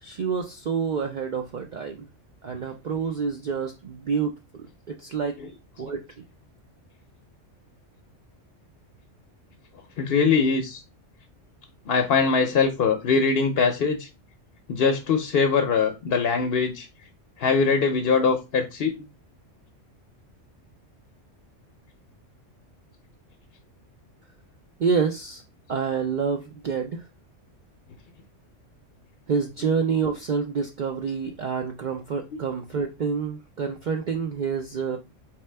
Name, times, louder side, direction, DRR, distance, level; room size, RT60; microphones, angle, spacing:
voice 1, 0.0-2.0 2.4-4.3 4.9-5.4 5.8-6.0 24.8-25.4 25.7-27.1 29.3-35.0, right 5 dB, 60° right, 4 dB, 0.5 m, -27 dB
voice 2, 10.0-10.8 11.9-14.1 14.7-16.9 17.4-18.9, left 5 dB, 60° left, 5 dB, 0.7 m, -22 dB
4.3 x 3.2 x 3.2 m, 0.26 s
omnidirectional pair, 1.3 m